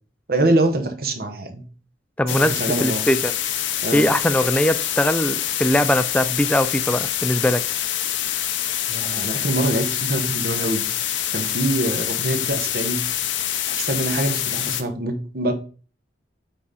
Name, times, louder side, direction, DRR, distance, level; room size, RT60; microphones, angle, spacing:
voice 1, 0.3-1.6 2.3-3.0 3.8-4.1 8.9-10.9 11.3-13.0 13.7-15.5, right 2 dB, 50° right, 1.0 m, -24 dB
voice 2, 2.2-3.4 3.9-7.6, left 1 dB, 5° left, 0.4 m, -21 dB
sound 1, 2.3-14.8, left 11 dB, 80° left, 0.7 m, -25 dB
8.6 x 3.7 x 4.2 m
head